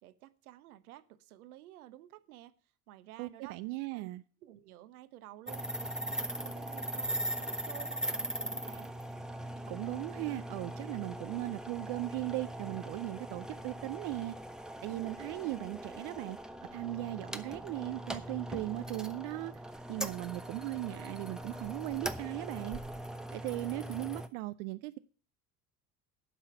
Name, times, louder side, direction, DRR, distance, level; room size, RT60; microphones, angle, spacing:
voice 1, 0.0-2.5 2.9-3.6 3.9-4.1 4.4-8.9, right 14 dB, 65° right, 1.0 m, -52 dB
voice 2, 3.2-4.2 9.7-14.4 14.8-16.4 16.7-19.5 19.9-22.8 23.3-25.0, right 19 dB, 45° right, 0.5 m, -38 dB
sound 1, 5.5-24.3, right 1 dB, ahead, 0.8 m, -40 dB
12.0 x 5.7 x 8.9 m
figure-of-eight pair, 65°, 48 cm